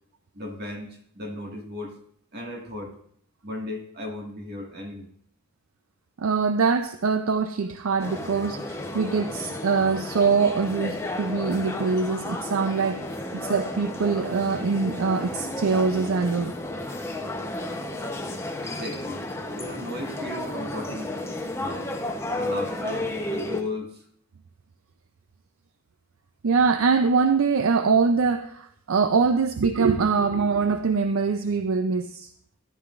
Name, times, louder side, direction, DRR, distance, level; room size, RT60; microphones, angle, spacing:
voice 1, 0.3-2.0 2.3-3.0 3.4-5.1 18.6-19.3 19.5-21.1 21.6-21.9 22.4-24.0, left 1 dB, 45° right, 1.8 m, -35 dB
voice 2, 6.2-16.5 26.4-32.3, right 5 dB, 65° right, 0.5 m, -23 dB
sound 1, 8.0-23.6, left 1 dB, 10° left, 0.8 m, -33 dB
13.5 x 11.5 x 2.5 m
head